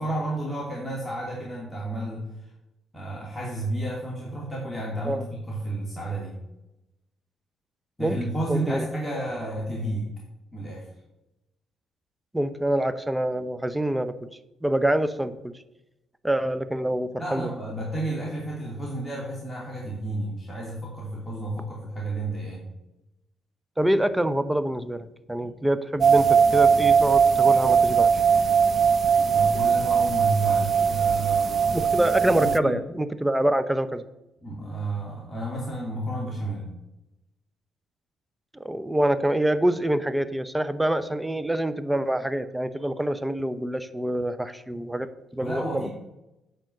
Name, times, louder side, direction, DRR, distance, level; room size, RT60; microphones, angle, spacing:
voice 1, 0.0-2.5 2.9-6.3 8.0-10.1 10.5-10.9 17.2-22.7 29.1-31.9 32.4-32.8 34.4-36.7 45.4-45.9, right 1 dB, 10° left, -4 dB, 2.8 m, -31 dB
voice 2, 8.5-8.8 12.3-14.1 14.6-15.5 16.2-17.5 23.8-28.1 31.7-34.0 38.6-45.9, right 1 dB, 10° right, 12 dB, 0.8 m, -26 dB
sound 1, 26.0-32.6, right 6 dB, 50° right, 0.4 m, -20 dB
9.1 x 5.1 x 7.7 m, 0.94 s
supercardioid pair, 75°, 0 cm